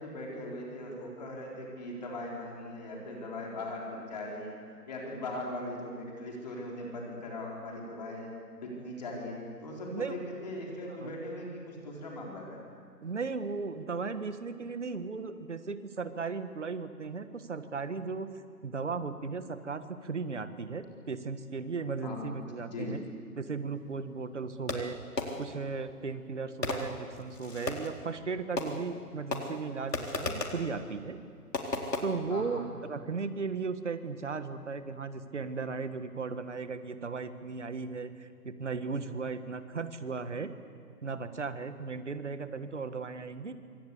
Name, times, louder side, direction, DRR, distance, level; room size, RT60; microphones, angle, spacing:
voice 1, 0.0-4.6 4.9-8.3 8.6-12.6 22.0-22.3 22.6-23.0 32.3-32.6, left 1 dB, 25° left, -2 dB, 4.1 m, -39 dB
voice 2, 13.0-18.3 18.6-23.0 23.4-25.0 25.4-31.2 32.0-40.5 41.0-43.5, right 4 dB, 45° right, 10 dB, 1.7 m, -36 dB
Fireworks, 24.7-25.6 26.6-28.0 28.6-29.0 29.3-30.7 31.5-32.0, left 3 dB, 75° left, 4.1 m, -35 dB
25.5 x 25.5 x 8.5 m, 2.2 s
figure-of-eight pair, 170°, 49 cm